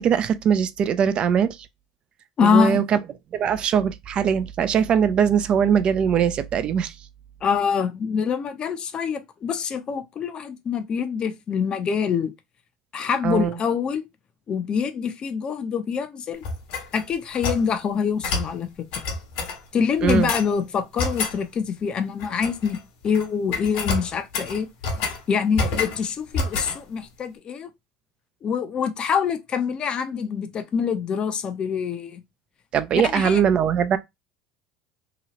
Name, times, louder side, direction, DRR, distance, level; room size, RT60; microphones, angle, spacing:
voice 1, 0.0-1.6 2.4-3.0 3.3-6.9 13.2-13.5 20.0-20.3 32.7-34.0, right 8 dB, 45° right, 0.4 m, -21 dB
voice 2, 2.4-2.8 7.4-12.3 12.9-14.1 14.5-16.5 16.9-19.0 19.7-22.8 23.0-24.7 25.3-27.7 28.4-32.2 33.0-33.4, left 6 dB, 40° left, 0.6 m, -25 dB
sound 1, 16.4-17.7 18.2-18.5 18.9-19.6 20.1-20.5 21.0-21.4 22.2-22.8 23.0-23.3 23.5-25.2 25.5-26.0 26.3-26.8, left 3 dB, 65° left, 1.1 m, -28 dB
2.9 x 2.3 x 2.9 m
hypercardioid pair, 85°, 2 cm